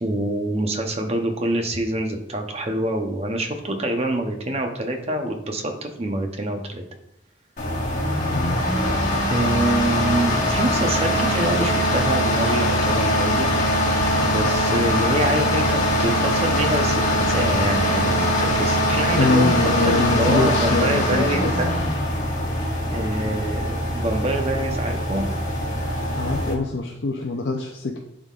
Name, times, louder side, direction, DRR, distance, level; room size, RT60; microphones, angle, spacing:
voice 1, 0.0-6.8 9.3-13.5 14.2-21.8 22.9-25.2, right 1 dB, 30° right, 4 dB, 0.7 m, -26 dB
sound 1, 7.6-26.5, equal, 40° left, 1.5 m, -22 dB
voice 2, 19.2-21.5 26.1-28.0, left 3 dB, 65° left, 1 dB, 0.6 m, -23 dB
11.0 x 3.7 x 2.4 m, 0.78 s
head